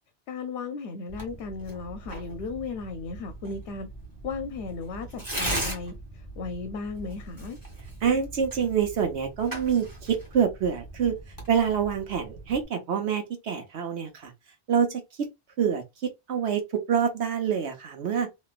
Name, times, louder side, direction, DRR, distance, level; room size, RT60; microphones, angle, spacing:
voice 1, 0.3-3.9 4.2-5.9 6.4-7.6, left 4 dB, 85° left, 0.9 m, -35 dB
Tearing, 1.1-12.6, right 1 dB, 20° right, 1.4 m, -39 dB
voice 2, 8.0-11.1 11.5-14.3 14.7-15.3 15.6-16.6 16.9-18.3, right 7 dB, 80° right, 1.2 m, -26 dB
3.1 x 2.7 x 2.4 m
omnidirectional pair, 1.1 m